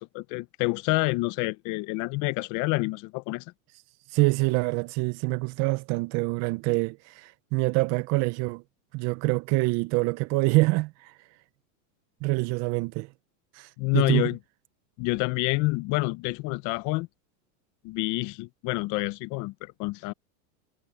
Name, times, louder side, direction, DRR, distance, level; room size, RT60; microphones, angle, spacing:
voice 1, 0.0-3.4 13.8-14.4 15.0-17.1 17.8-20.1, left 23 dB, 45° left, 0.7 m, -28 dB
voice 2, 4.1-8.6 8.9-11.1 12.2-13.1 13.5-14.3, right 23 dB, 40° right, 0.5 m, -26 dB
supercardioid pair, 140°, 44 cm